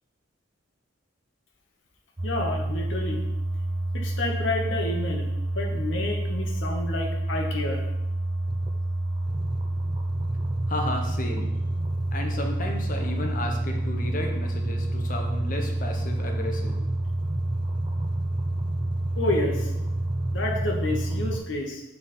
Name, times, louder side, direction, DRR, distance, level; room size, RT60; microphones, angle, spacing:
voice 1, 2.2-3.2 3.9-5.3 5.5-7.9 19.2-19.7 20.3-21.8, left 2 dB, 70° left, 1 dB, 1.0 m, -29 dB
sound 1, 2.2-21.4, right 1 dB, 25° right, 0.5 m, -28 dB
voice 2, 10.7-11.5 12.1-16.8, left 1 dB, 45° left, 2 dB, 0.9 m, -33 dB
5.6 x 3.9 x 4.3 m, 0.95 s
head